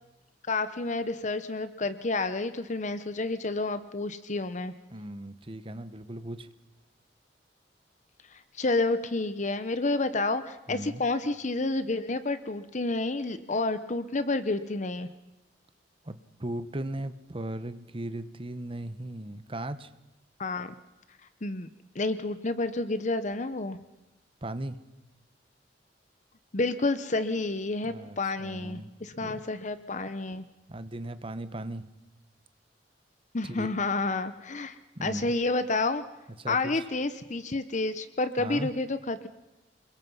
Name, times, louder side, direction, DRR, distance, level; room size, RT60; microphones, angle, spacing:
voice 1, 0.5-4.7 8.3-15.1 20.4-20.7 21.4-21.7 21.9-23.8 26.5-30.5 33.3-36.0 36.5-39.3, left 3 dB, 45° left, 12 dB, 0.9 m, -30 dB
voice 2, 4.9-6.5 10.7-11.0 16.1-19.9 24.4-24.8 27.9-28.9 29.2-29.4 30.7-31.8 33.6-33.7 35.0-35.3 36.4-36.7 38.4-38.7, right 1 dB, 30° right, 12 dB, 1.2 m, -37 dB
29.0 x 22.0 x 5.6 m, 1.0 s
head